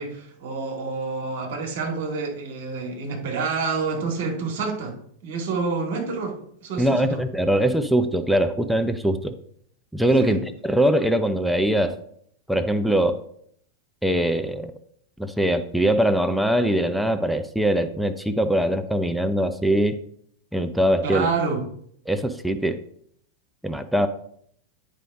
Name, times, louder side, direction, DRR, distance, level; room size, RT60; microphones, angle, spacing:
voice 1, 0.0-4.9 5.2-7.2 10.2-10.4 21.0-21.6, right 4 dB, 55° right, 1 dB, 1.9 m, -28 dB
voice 2, 6.8-9.3 9.9-12.0 12.5-13.2 14.0-14.7 15.2-20.0 20.5-21.3 22.1-22.8 23.6-24.1, right 1 dB, ahead, 7 dB, 0.5 m, -22 dB
9.1 x 5.0 x 3.6 m, 0.65 s
figure-of-eight pair, 90°, 0 cm